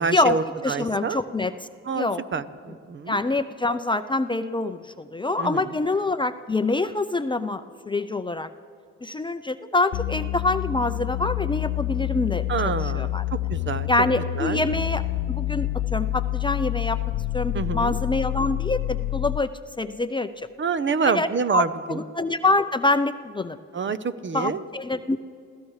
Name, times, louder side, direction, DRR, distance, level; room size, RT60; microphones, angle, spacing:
voice 1, 0.0-1.2 1.8-3.2 5.4-5.8 12.5-13.1 13.5-13.9 14.3-14.6 17.5-18.0 20.6-22.0 23.7-24.6, right 5 dB, 40° right, 13 dB, 0.7 m, -27 dB
voice 2, 0.6-1.5 1.9-2.2 3.1-8.5 9.0-12.4 12.9-13.2 13.9-15.0 15.3-17.0 17.3-19.5 19.8-20.5 21.0-21.3 21.5-23.6 24.3-25.2, left 2 dB, 15° left, 10 dB, 0.5 m, -25 dB
sound 1, 9.9-19.5, left 15 dB, 70° left, 0.5 m, -28 dB
28.0 x 16.0 x 3.2 m, 2.5 s
cardioid pair, 90°, 30 cm